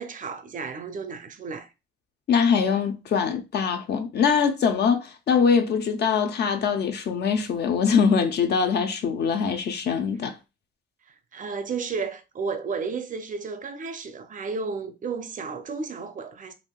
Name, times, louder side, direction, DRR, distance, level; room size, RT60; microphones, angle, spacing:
voice 1, 0.0-1.7 11.1-16.5, right 5 dB, 40° right, 0.5 m, -33 dB
voice 2, 2.3-10.4, left 6 dB, 60° left, 0.5 m, -23 dB
3.5 x 2.5 x 2.2 m
cardioid pair, 90°, 20 cm